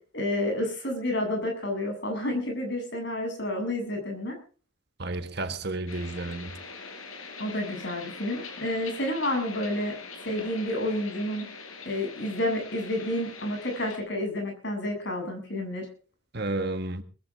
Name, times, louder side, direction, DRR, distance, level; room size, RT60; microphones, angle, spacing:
voice 1, 0.1-4.4 7.4-10.0 10.2-11.5 11.8-15.9, left 1 dB, 55° left, 8.0 m, -30 dB
voice 2, 5.0-6.5 16.3-17.0, right 2 dB, 50° right, 1.6 m, -31 dB
sound 1, 5.9-14.0, left 4 dB, 85° left, 4.7 m, -43 dB
21.5 x 15.0 x 3.7 m
head